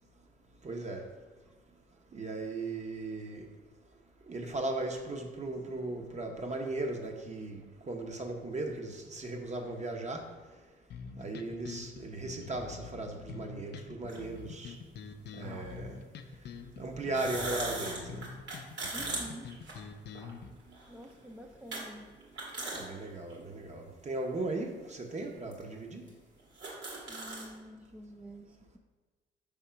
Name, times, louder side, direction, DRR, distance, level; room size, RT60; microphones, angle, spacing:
voice 1, 0.6-1.0 2.1-3.4 4.3-7.6 7.9-10.2 11.2-14.7 15.3-16.0 16.8-18.2 22.7-26.0, right 2 dB, 35° right, 3 dB, 0.9 m, -37 dB
sound 1, 10.9-20.5, left 6 dB, 60° left, 0.5 m, -46 dB
sound 2, 14.1-14.2 15.4-15.6 17.0-20.3 20.7-20.8 21.7-21.8 22.2-22.8 23.3-23.4 24.3-24.4 25.2-25.3 25.5-25.6 26.1-26.2 26.4-27.5, right 2 dB, 65° right, 1.8 m, -38 dB
voice 2, 18.9-19.5 20.9-22.1 27.1-28.8, right 1 dB, 5° right, 3 dB, 0.3 m, -48 dB
4.8 x 3.6 x 5.6 m, 1.3 s
cardioid pair, 90°, 20 cm